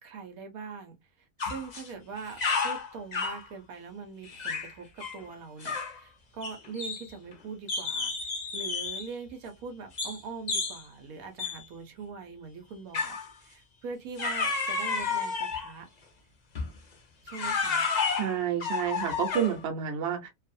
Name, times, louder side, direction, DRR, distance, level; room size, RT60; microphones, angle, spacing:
voice 1, 0.0-15.9 17.2-17.8, right 5 dB, 75° right, 1.1 m, -42 dB
sound 1, 1.4-1.9 2.2-3.4 4.3-4.7 5.0-5.2 5.6-6.0 6.4-7.3 7.7-9.1 10.0-10.2 10.5-10.8 11.4-11.6 12.9-13.3 14.2-15.7 16.5-16.8 17.3-19.6, left 4 dB, 45° left, 0.6 m, -31 dB
voice 2, 18.2-20.3, right 9 dB, 55° right, 0.9 m, -29 dB
2.6 x 2.4 x 2.6 m
omnidirectional pair, 1.6 m